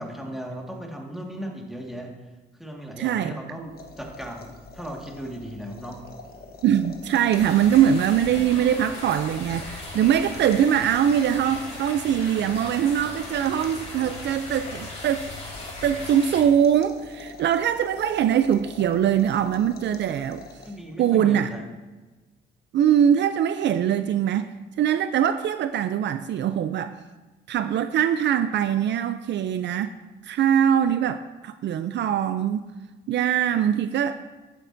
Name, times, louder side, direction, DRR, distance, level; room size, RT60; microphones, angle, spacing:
voice 1, 0.0-2.1 2.6-6.0 20.6-21.6, equal, ahead, 0 dB, 1.8 m, -37 dB
voice 2, 3.0-3.4 6.6-15.3 15.8-20.4 21.0-21.5 22.7-24.5 24.8-27.0 27.5-29.9 30.2-32.6 33.1-34.2, right 9 dB, 65° right, 10 dB, 0.4 m, -22 dB
sound 1, 3.6-21.0, left 3 dB, 50° left, 1.2 m, -45 dB
sound 2, 7.3-16.4, left 2 dB, 35° left, 3.2 m, -38 dB
11.0 x 8.4 x 2.7 m, 1.2 s
cardioid pair, 90°, 20 cm